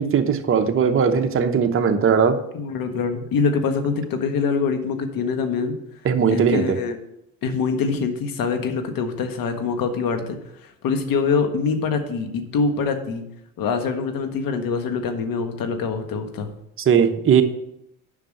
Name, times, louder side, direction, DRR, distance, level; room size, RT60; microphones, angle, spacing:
voice 1, 0.0-2.4 6.0-6.8 16.8-17.4, right 7 dB, 35° right, 5 dB, 1.0 m, -19 dB
voice 2, 2.5-5.7 6.3-7.0 7.4-10.4 10.6-13.2 13.6-16.5, left 5 dB, 65° left, 7 dB, 1.4 m, -24 dB
7.4 x 5.7 x 6.5 m, 0.81 s
supercardioid pair, 90°, 37 cm